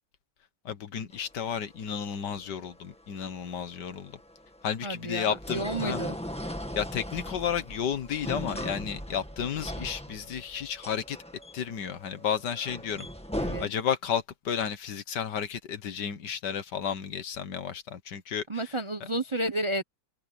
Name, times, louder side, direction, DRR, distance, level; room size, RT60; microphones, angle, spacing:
voice 1, 0.7-4.2 4.6-6.0 6.7-11.2 11.5-13.1 13.6-18.7, left 8 dB, 75° left, 1.9 m, -32 dB
sound 1, 1.1-13.7, equal, 5° left, 1.8 m, -39 dB
voice 2, 4.8-6.2 13.4-13.7 18.5-19.8, right 1 dB, 25° right, 0.7 m, -31 dB
open air
omnidirectional pair, 1.9 m